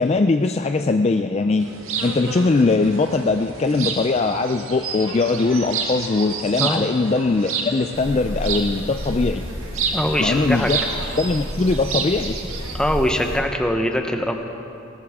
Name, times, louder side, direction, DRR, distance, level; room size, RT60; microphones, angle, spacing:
voice 1, 0.0-1.7 2.0-9.4 10.2-10.8 11.2-12.4, left 3 dB, 30° left, 6 dB, 0.3 m, -20 dB
sound 1, 1.6-12.8, right 4 dB, 85° right, 1.6 m, -30 dB
sound 2, 7.9-13.4, equal, 90° left, 4.7 m, -32 dB
voice 2, 9.9-10.7 12.7-14.5, equal, 5° left, 4 dB, 0.9 m, -22 dB
20.5 x 18.5 x 3.6 m, 2.7 s
head